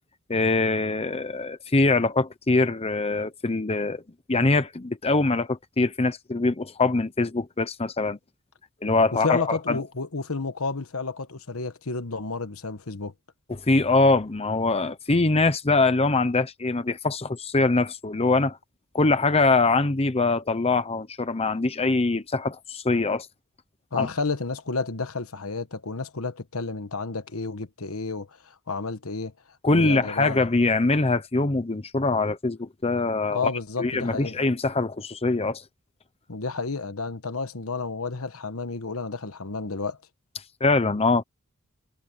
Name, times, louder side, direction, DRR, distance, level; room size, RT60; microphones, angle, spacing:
voice 1, 0.3-4.0 4.3-8.2 8.8-9.8 13.5-18.6 18.9-23.3 24.0-24.1 29.6-33.5 33.8-35.6 40.6-41.2, left 3 dB, 30° left, 0.9 m, -23 dB
voice 2, 9.1-13.1 23.9-29.3 29.7-30.4 33.3-34.4 36.3-40.0, left 4 dB, 75° left, 1.4 m, -31 dB
head